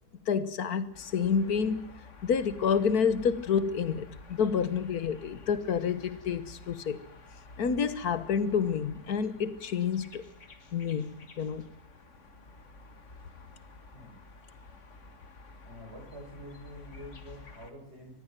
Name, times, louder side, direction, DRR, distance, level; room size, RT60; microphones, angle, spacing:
voice 1, 0.3-1.9 2.2-7.0 7.6-10.2 10.7-11.1 11.4-11.7, left 6 dB, 60° left, 1.7 m, -28 dB
sound 1, 0.9-17.7, left 3 dB, 45° left, 2.0 m, -51 dB
voice 2, 15.6-18.2, equal, 35° right, 6.9 m, -47 dB
21.5 x 14.5 x 9.1 m
omnidirectional pair, 1.9 m